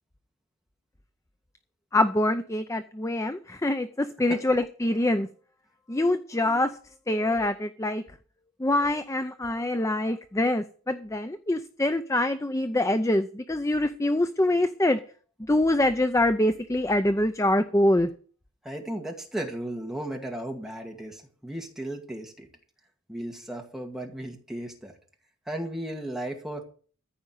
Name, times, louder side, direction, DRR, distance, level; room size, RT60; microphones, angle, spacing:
voice 1, 1.9-5.3 5.9-6.7 7.1-8.0 8.6-15.0 15.5-18.1, left 1 dB, 15° left, 9 dB, 0.5 m, -25 dB
voice 2, 18.6-22.5 23.1-24.9 25.5-26.6, right 1 dB, ahead, 1 dB, 2.1 m, -35 dB
14.5 x 5.1 x 9.3 m, 0.42 s
head